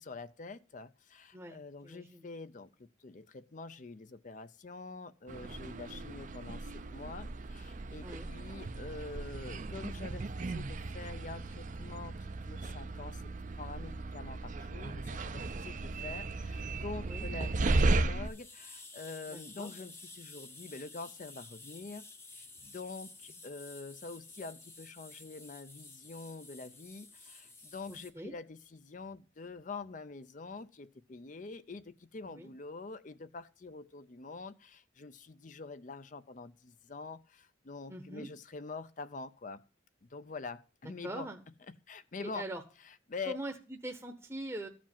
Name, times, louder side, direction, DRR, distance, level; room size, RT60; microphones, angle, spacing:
voice 1, 0.0-22.0 22.3-39.6 40.0-41.3 41.7-42.5 42.8-43.4, left 4 dB, 40° left, 0.5 m, -46 dB
voice 2, 1.8-2.3 8.0-8.3 17.0-17.3 19.3-19.7 27.9-28.3 32.3-32.5 37.9-38.3 41.0-41.4 42.2-42.6 43.3-44.7, right 1 dB, 15° right, 0.9 m, -42 dB
sound 1, 5.3-18.3, right 2 dB, 40° right, 0.5 m, -35 dB
sound 2, 18.2-28.1, left 3 dB, 15° left, 0.8 m, -52 dB
14.0 x 5.1 x 7.2 m
head